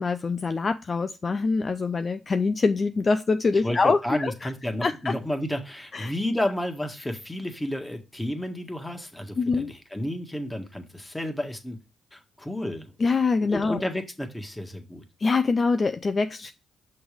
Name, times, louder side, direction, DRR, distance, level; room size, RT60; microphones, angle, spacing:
voice 1, 0.0-4.5 4.8-5.1 5.9-6.1 9.4-9.7 13.0-13.8 15.2-16.5, left 4 dB, 40° left, 9 dB, 0.4 m, -24 dB
voice 2, 3.6-11.8 12.1-12.9 13.4-15.0, left 1 dB, 10° left, 4 dB, 1.5 m, -31 dB
6.1 x 3.2 x 5.1 m, 0.27 s
hypercardioid pair, 50°, 0 cm